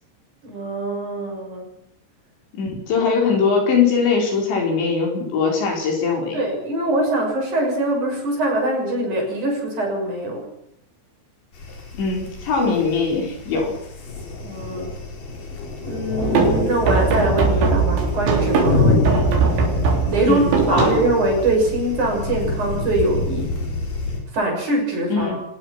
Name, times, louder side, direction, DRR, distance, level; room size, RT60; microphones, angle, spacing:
voice 1, 0.4-1.7 3.0-3.1 6.3-10.5 14.4-14.9 15.9-19.1 20.1-23.5 24.3-25.4, right 1 dB, 40° right, 0 dB, 7.6 m, -23 dB
voice 2, 2.5-6.4 12.0-13.7 19.0-19.3 20.3-21.0 25.1-25.4, left 5 dB, 70° left, 1 dB, 7.4 m, -21 dB
sound 1, 11.5-24.2, left 2 dB, 50° left, 6.0 m, -27 dB
sound 2, 16.2-21.7, right 4 dB, 85° right, 6.3 m, -21 dB
25.0 x 20.0 x 6.1 m, 0.75 s
omnidirectional pair, 5.3 m